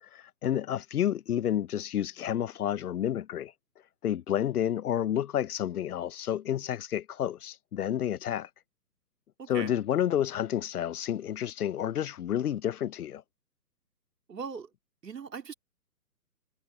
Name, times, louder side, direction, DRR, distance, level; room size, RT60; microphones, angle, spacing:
voice 1, 0.0-3.5 4.0-8.5 9.5-13.2, left 10 dB, 65° left, 0.7 m, -30 dB
voice 2, 9.4-9.8 14.3-14.7 15.0-15.5, right 5 dB, 85° right, 3.2 m, -39 dB
hypercardioid pair, 155°, 48 cm